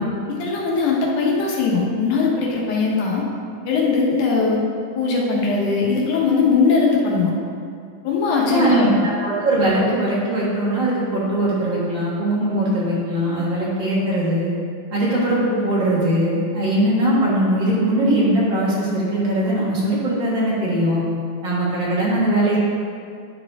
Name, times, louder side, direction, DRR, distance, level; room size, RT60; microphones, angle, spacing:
voice 1, 0.3-3.2 3.7-4.6 5.0-7.3 8.0-8.9, left 4 dB, 80° left, -3 dB, 2.6 m, -20 dB
voice 2, 8.4-14.5 14.9-21.0 21.4-22.6, right 1 dB, 45° right, -7 dB, 1.7 m, -20 dB
10.5 x 4.8 x 3.5 m, 2.3 s
omnidirectional pair, 3.5 m